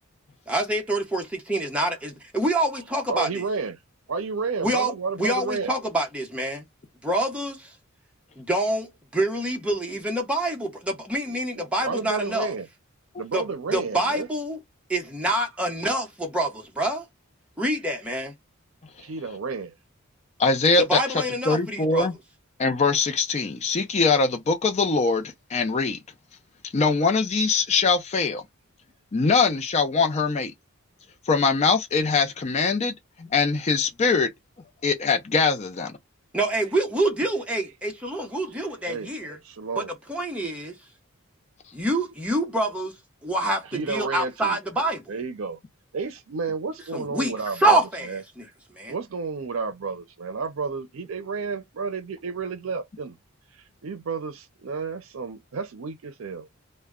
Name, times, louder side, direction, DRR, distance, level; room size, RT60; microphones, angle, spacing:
voice 1, 0.5-3.3 4.6-4.9 5.2-6.6 7.0-7.6 8.4-12.5 13.3-13.4 13.7-14.6 14.9-17.0 17.6-18.3 20.9-22.1 36.3-39.4 39.8-39.9 40.1-40.7 41.7-42.9 43.2-43.6 43.9-45.0 46.9-47.3 47.6-48.1 48.8-48.9, right 1 dB, 5° right, 0.8 m, -26 dB
voice 2, 2.6-3.8 4.1-5.8 7.3-7.4 11.3-12.7 13.2-14.3 19.0-19.7 36.7-36.8 37.6-37.7 38.5-39.1 39.4-39.9 42.0-42.1 42.5-42.6 43.6-44.6 45.1-45.6 45.9-48.2 48.9-53.2 53.8-56.6, right 4 dB, 70° right, 0.5 m, -32 dB
voice 3, 20.4-22.1 22.6-26.0 26.7-28.4 29.1-30.5 31.3-34.3 34.8-36.0, left 4 dB, 30° left, 0.4 m, -22 dB
2.1 x 2.1 x 3.5 m
head